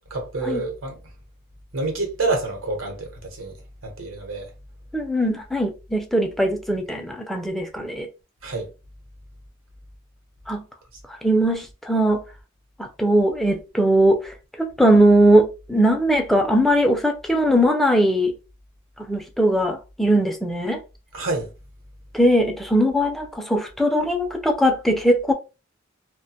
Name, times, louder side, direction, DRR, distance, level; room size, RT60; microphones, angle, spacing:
voice 1, 0.1-1.0 1.7-3.5 3.8-4.5 8.4-8.7 21.1-21.5, right 3 dB, 90° right, 0.9 m, -28 dB
voice 2, 4.9-8.1 10.5-10.6 11.1-12.2 12.8-18.3 19.0-20.8 22.1-25.3, right 1 dB, ahead, 0.3 m, -20 dB
2.4 x 2.1 x 2.7 m
head